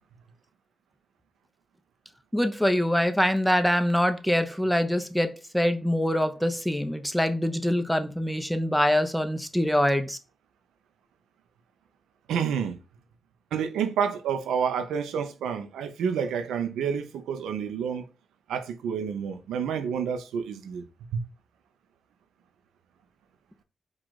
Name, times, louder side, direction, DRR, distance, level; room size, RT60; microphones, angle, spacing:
voice 1, 2.3-10.2, equal, ahead, 0.8 m, -24 dB
voice 2, 12.3-12.8 13.5-18.1 18.5-20.8 21.1-21.2, right 7 dB, 90° right, 0.6 m, -29 dB
4.7 x 2.5 x 4.0 m
supercardioid pair, 50°, 0 cm